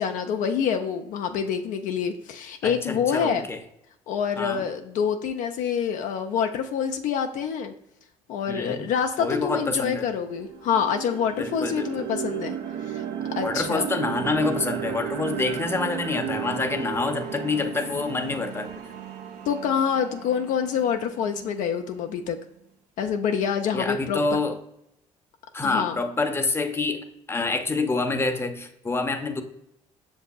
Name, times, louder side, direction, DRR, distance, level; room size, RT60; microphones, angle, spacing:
voice 1, 0.0-3.5 4.1-7.7 8.3-12.6 12.9-13.0 13.4-13.9 19.5-22.4 23.0-24.2 25.6-26.0, left 7 dB, 65° left, 5 dB, 0.4 m, -26 dB
voice 2, 2.6-3.6 4.4-4.6 8.5-8.8 9.2-10.1 11.4-11.9 13.4-18.7 23.7-24.6 25.5-29.4, left 3 dB, 15° left, 5 dB, 0.6 m, -27 dB
sound 1, 9.4-9.5 9.9-22.0, right 9 dB, 65° right, 0.5 m, -34 dB
6.5 x 2.6 x 2.3 m, 0.79 s
supercardioid pair, 65°, 14 cm